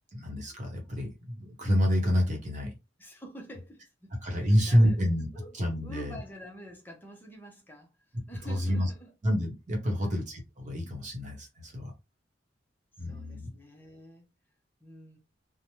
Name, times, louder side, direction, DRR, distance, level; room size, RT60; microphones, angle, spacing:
voice 1, 0.1-2.7 4.2-5.3 5.5-6.2 8.4-8.9 9.2-11.9 13.0-13.5, equal, 40° right, 0.9 m, -28 dB
voice 2, 3.0-5.0 5.3-9.1 9.9-10.2 13.0-14.2 14.8-15.2, equal, 10° left, 0.7 m, -48 dB
3.1 x 2.1 x 2.8 m
head